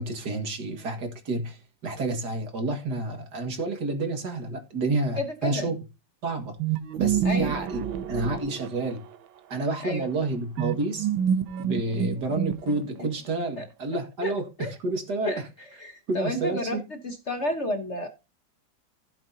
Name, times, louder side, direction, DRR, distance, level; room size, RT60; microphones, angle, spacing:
voice 1, 0.0-5.8 6.2-6.6 7.0-9.0 9.5-11.1 11.6-15.5 16.1-16.8, right 2 dB, 55° right, 2.4 m, -29 dB
voice 2, 5.2-5.7 7.2-7.5 9.8-10.1 13.6-13.7 14.2-14.3 14.6-14.7 15.2-15.4 15.8-16.8 17.0-18.1, left 1 dB, 40° left, 1.2 m, -30 dB
sound 1, 6.6-9.2 10.6-13.0, right 8 dB, 80° right, 1.6 m, -28 dB
15.5 x 7.9 x 2.8 m
omnidirectional pair, 2.1 m